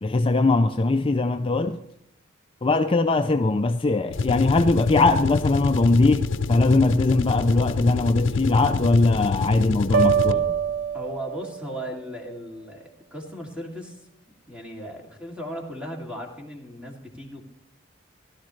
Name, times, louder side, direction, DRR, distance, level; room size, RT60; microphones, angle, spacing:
voice 1, 0.0-1.8 2.6-10.4, left 3 dB, 30° left, 0.5 m, -21 dB
sound 1, 4.1-10.6, left 4 dB, 80° left, 0.6 m, -27 dB
sound 2, 9.9-11.8, right 7 dB, 65° right, 0.4 m, -24 dB
voice 2, 10.9-14.1 14.5-17.4, equal, 5° right, 2.7 m, -36 dB
16.0 x 12.5 x 3.2 m
head